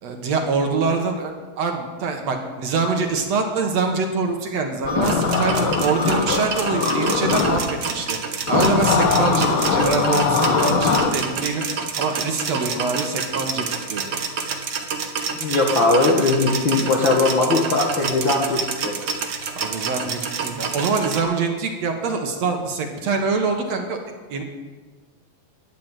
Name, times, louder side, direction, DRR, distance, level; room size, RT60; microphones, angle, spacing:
voice 1, 0.0-8.2 8.5-11.6 12.0-14.1 19.6-24.0 24.3-24.4, right 4 dB, 60° right, 4 dB, 2.1 m, -24 dB
sound 1, 4.8-7.6 8.5-11.1, left 5 dB, 70° left, 1.2 m, -21 dB
sound 2, 5.0-21.2, right 6 dB, 90° right, 1.0 m, -28 dB
voice 2, 15.4-18.9, left 3 dB, 45° left, -1 dB, 1.7 m, -19 dB
11.5 x 10.5 x 9.1 m, 1.3 s
omnidirectional pair, 4.1 m